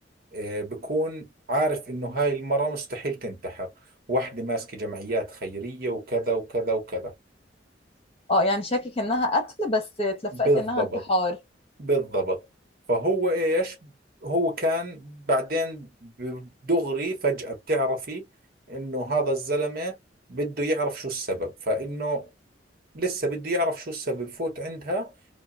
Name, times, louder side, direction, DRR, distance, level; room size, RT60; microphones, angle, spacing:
voice 1, 0.3-3.7 4.1-7.1 10.3-11.0 11.8-12.4 12.9-13.9 14.2-18.2 18.7-20.0 20.3-22.3 22.9-25.1, right 1 dB, 55° right, 1.3 m, -27 dB
voice 2, 8.3-11.4, left 1 dB, 30° left, 1.2 m, -25 dB
2.9 x 2.4 x 2.3 m
head